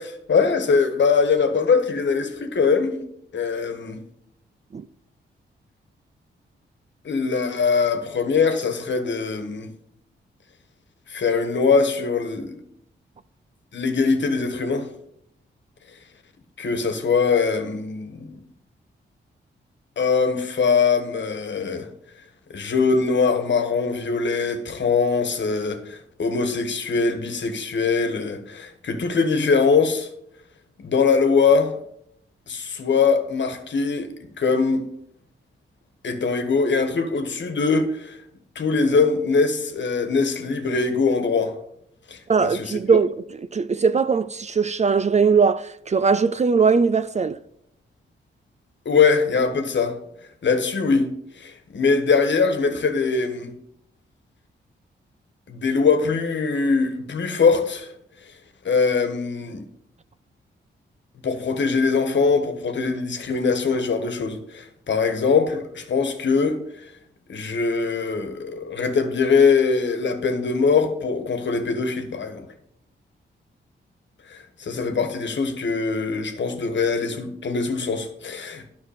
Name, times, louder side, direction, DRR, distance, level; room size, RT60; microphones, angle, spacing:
voice 1, 0.0-3.0 3.3-4.0 7.0-9.7 11.1-12.6 13.7-14.9 16.6-18.4 20.0-21.9 22.5-30.1 30.8-31.7 32.5-34.1 34.4-34.8 36.0-38.2 38.5-41.5 42.1-42.8 48.8-50.0 50.4-51.1 51.4-53.5 55.5-57.9 58.6-59.6 61.2-66.6 67.3-72.5 74.3-78.7, left 5 dB, 60° left, 1.4 m, -22 dB
voice 2, 42.3-47.4, right 5 dB, 35° right, 0.4 m, -20 dB
10.5 x 6.4 x 5.0 m
cardioid pair, 55°, 21 cm